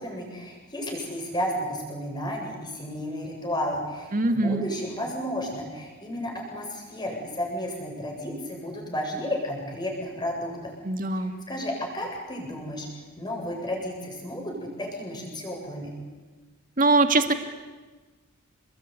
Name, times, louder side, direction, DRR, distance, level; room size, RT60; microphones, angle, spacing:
voice 1, 0.0-10.7 11.2-12.9 13.2-15.9, equal, 20° left, 0 dB, 7.9 m, -32 dB
voice 2, 4.1-4.7 10.8-11.3 16.8-17.3, right 2 dB, 40° right, 7 dB, 2.0 m, -22 dB
28.5 x 21.5 x 9.6 m, 1.3 s
head